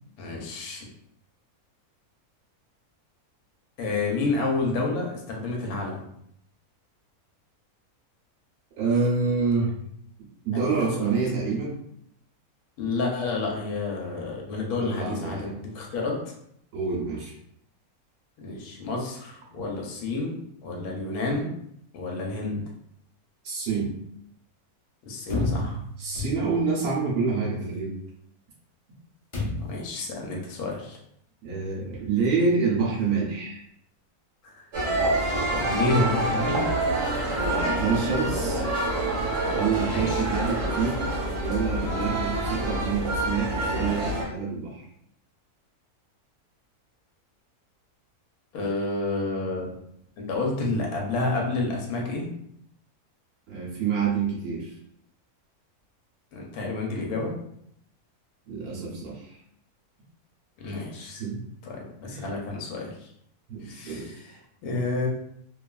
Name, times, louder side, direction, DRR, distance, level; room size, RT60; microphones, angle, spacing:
voice 1, 0.2-0.9 3.8-6.1 10.5-10.7 10.9-11.1 12.8-16.1 18.4-20.4 20.6-21.5 21.9-22.7 25.1-25.8 29.6-31.0 34.4-34.7 35.1-36.7 39.8-40.2 48.5-49.7 50.2-52.3 56.3-57.3 60.6-61.2 61.6-63.1 63.6-65.1, left 3 dB, 80° left, -1 dB, 1.2 m, -30 dB
voice 2, 8.8-9.7 10.2-11.7 14.8-15.6 16.7-17.3 23.4-23.9 26.0-27.9 31.4-33.6 37.3-38.6 39.5-41.1 41.4-44.8 53.5-54.7 58.5-59.4 61.2-61.4 62.0-62.3 63.5-64.1, right 5 dB, 80° right, -4 dB, 1.2 m, -27 dB
sound 1, 25.3-26.8 29.3-29.9, left 2 dB, 25° left, 0.7 m, -30 dB
sound 2, 34.7-44.3, right 1 dB, 55° right, 1.1 m, -27 dB
2.8 x 2.3 x 2.2 m, 0.72 s
omnidirectional pair, 1.6 m